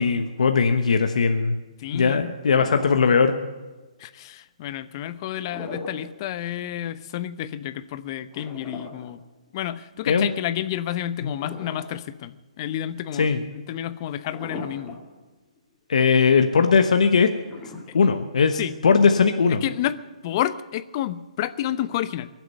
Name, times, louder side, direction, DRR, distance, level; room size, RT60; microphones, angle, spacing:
voice 1, 0.0-1.6 1.9-3.3 10.1-10.3 11.2-11.3 13.2-13.4 15.9-17.3 17.9-19.6, left 5 dB, 70° left, 6 dB, 1.2 m, -19 dB
voice 2, 1.8-2.4 4.0-9.2 9.5-15.0 17.9-18.0 18.6-18.7 19.5-20.0 20.2-22.3, left 12 dB, 40° left, 14 dB, 0.8 m, -30 dB
sound 1, 2.4-3.4 5.3-6.1 6.5-6.6 8.3-9.8 11.3-12.2 12.7-12.8 14.3-15.2 15.6-15.7 17.4-18.4, left 2 dB, 10° left, 2.7 m, -39 dB
22.5 x 7.7 x 7.9 m, 1.2 s
hypercardioid pair, 140°, 4 cm